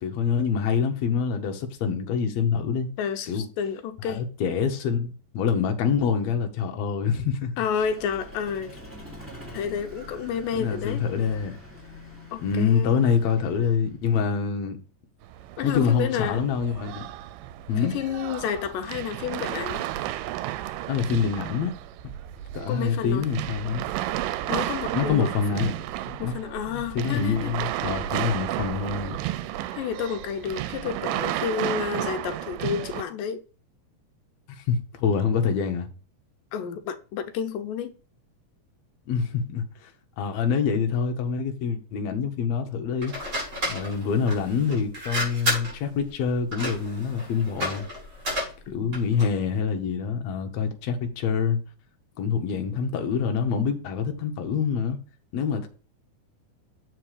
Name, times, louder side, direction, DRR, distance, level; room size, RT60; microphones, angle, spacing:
voice 1, 0.0-2.9 3.3-3.5 4.1-7.5 10.5-11.6 12.4-14.8 15.6-17.1 17.7-17.9 20.9-21.7 22.5-23.8 24.9-25.7 26.1-26.3 26.7-29.2 34.6-35.9 39.1-39.9 40.2-43.1 43.7-47.9 48.7-51.6 52.2-55.0 55.3-55.7, left 6 dB, 65° left, 1.9 m, -26 dB
voice 2, 3.0-4.2 7.6-8.8 9.5-11.1 12.3-13.0 15.6-16.4 17.8-19.8 22.7-23.3 24.5-25.3 26.2-27.6 29.7-33.4 36.5-37.9 48.7-49.0, left 7 dB, 90° left, 2.4 m, -30 dB
Vehicle, 7.6-14.0, left 1 dB, 5° right, 2.5 m, -44 dB
sound 1, 15.2-33.0, right 14 dB, 90° right, 2.2 m, -33 dB
sound 2, 43.0-49.4, equal, 25° right, 4.3 m, -32 dB
7.7 x 4.9 x 4.8 m
omnidirectional pair, 3.8 m